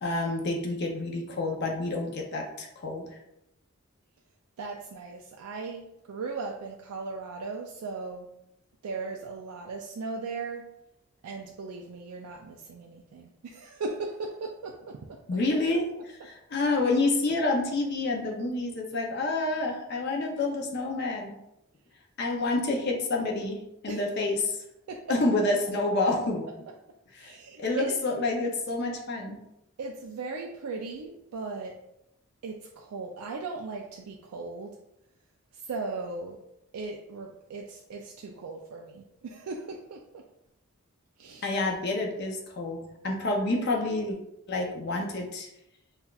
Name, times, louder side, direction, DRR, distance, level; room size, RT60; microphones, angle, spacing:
voice 1, 0.0-3.2 15.3-21.3 22.2-24.6 25.1-26.5 27.1-29.4 41.4-42.8 43.0-44.2 44.5-45.5, left 2 dB, 50° left, 1 dB, 0.5 m, -28 dB
voice 2, 4.6-8.3 8.8-10.7 11.2-15.2 23.9-24.0 24.9-25.0 27.2-28.0 29.8-31.8 32.4-34.8 35.5-36.4 36.7-40.2 41.2-41.5, right 3 dB, 85° right, 1 dB, 0.4 m, -37 dB
5.5 x 2.2 x 2.3 m, 0.84 s
head